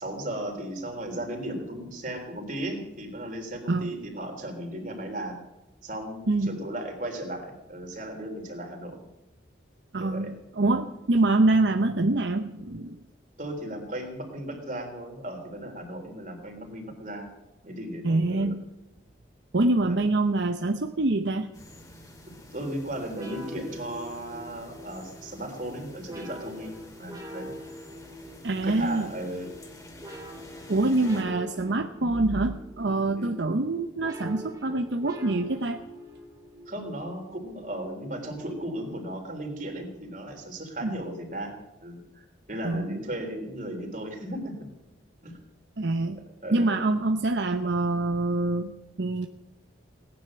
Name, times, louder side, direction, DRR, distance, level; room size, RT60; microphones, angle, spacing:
voice 1, 0.0-5.4 5.8-9.0 10.0-10.3 10.6-10.8 13.4-17.3 17.6-18.5 19.9-20.0 22.5-27.5 28.6-29.5 33.2-33.4 36.7-41.6 41.8-44.7 45.2-45.4 46.4-46.8, right 1 dB, 45° right, 2 dB, 3.6 m, -36 dB
voice 2, 6.3-6.6 9.9-13.0 18.0-18.6 19.5-21.5 28.4-29.1 30.7-35.8 40.8-41.0 42.6-43.0 45.8-46.2 46.5-49.3, right 2 dB, 70° right, 5 dB, 0.8 m, -25 dB
sound 1, 21.5-31.2, left 1 dB, 20° left, 2.3 m, -49 dB
sound 2, 23.1-39.3, equal, 20° right, 2.2 m, -45 dB
18.5 x 10.5 x 7.6 m, 0.97 s
head